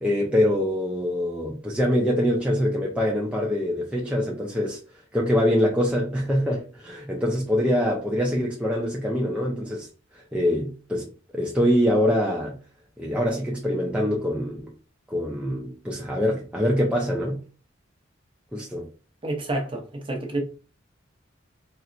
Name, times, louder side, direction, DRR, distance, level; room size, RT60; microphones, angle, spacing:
voice 1, 0.0-4.8 5.1-9.9 10.3-12.6 13.0-14.7 15.1-17.4 18.5-18.9, equal, 5° right, 0.4 m, -24 dB
voice 2, 19.2-20.4, right 2 dB, 30° right, 0.8 m, -29 dB
4.2 x 2.0 x 2.5 m
head